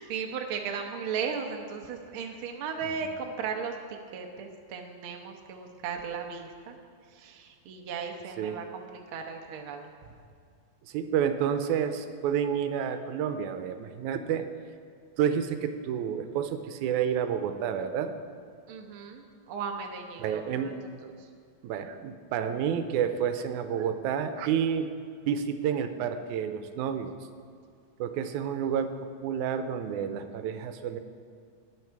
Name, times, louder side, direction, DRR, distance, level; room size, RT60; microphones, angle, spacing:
voice 1, 0.1-6.8 7.1-9.8 18.7-20.7 21.0-21.1, right 6 dB, 60° right, 3 dB, 1.5 m, -36 dB
voice 2, 10.9-14.5 15.2-18.2 20.2-20.8 21.6-24.9 25.3-27.2 28.0-28.9 29.2-31.0, right 8 dB, 90° right, 9 dB, 2.1 m, -29 dB
19.0 x 6.4 x 4.6 m, 2.2 s
omnidirectional pair, 3.3 m